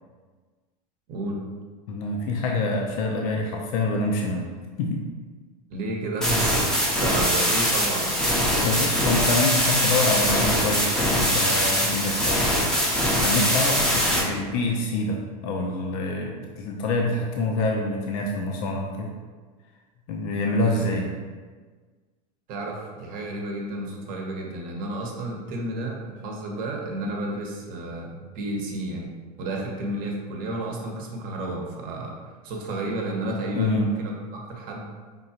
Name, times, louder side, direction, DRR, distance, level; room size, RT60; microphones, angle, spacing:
voice 1, 1.1-1.4 5.7-6.7 7.0-8.1 20.6-21.1 22.5-29.1 29.4-32.1 32.4-34.9, right 2 dB, 45° right, 0 dB, 0.8 m, -31 dB
voice 2, 1.9-4.5 4.8-5.0 8.6-19.1 20.1-21.2 33.5-33.9, left 2 dB, 65° left, 0 dB, 0.6 m, -26 dB
sound 1, 6.2-14.2, equal, 5° left, 0.6 m, -22 dB
5.1 x 2.3 x 2.8 m, 1.4 s
supercardioid pair, 115°, 20 cm